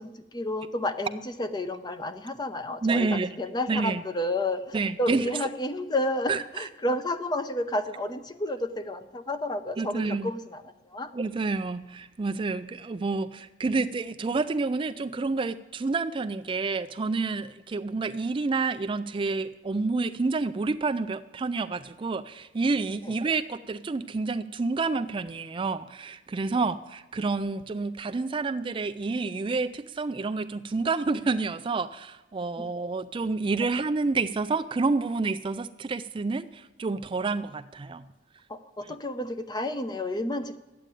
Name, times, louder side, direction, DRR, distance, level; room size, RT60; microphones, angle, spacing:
voice 1, 0.0-10.6 10.9-11.1 26.6-26.7 32.6-32.7 38.5-40.6, left 1 dB, 25° left, 10 dB, 0.7 m, -31 dB
voice 2, 2.8-3.4 3.7-4.0 4.7-5.3 6.3-6.7 9.8-10.3 11.1-38.0 38.8-38.9, right 3 dB, 30° right, 10 dB, 0.4 m, -29 dB
12.5 x 9.0 x 9.2 m, 1.1 s
head